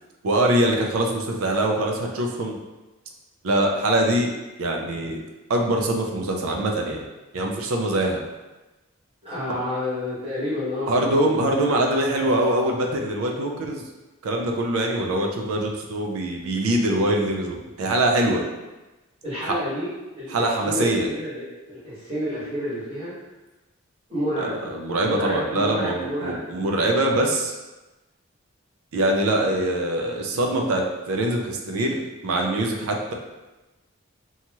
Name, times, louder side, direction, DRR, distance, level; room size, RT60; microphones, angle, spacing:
voice 1, 0.2-2.6 3.4-4.3 4.6-5.2 5.5-7.1 7.3-8.2 10.9-13.8 14.2-18.4 20.3-21.1 24.4-27.5 28.9-33.1, right 1 dB, 75° right, 1 dB, 0.4 m, -23 dB
voice 2, 9.2-11.5 19.2-23.1 24.1-24.6 25.0-26.4, equal, 25° right, -12 dB, 1.4 m, -30 dB
2.8 x 2.3 x 2.9 m, 1.1 s
head